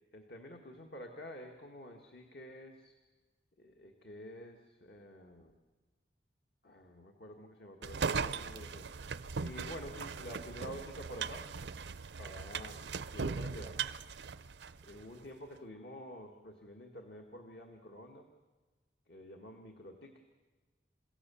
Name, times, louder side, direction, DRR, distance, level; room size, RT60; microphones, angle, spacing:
voice 1, 0.1-2.9 3.6-5.5 6.6-8.9 9.4-11.5 12.2-13.8 14.8-18.3 19.1-20.2, equal, 65° left, 3 dB, 1.8 m, -49 dB
sound 1, 7.8-15.0, right 5 dB, 80° right, 0.6 m, -39 dB
29.0 x 17.0 x 7.1 m, 1.3 s
head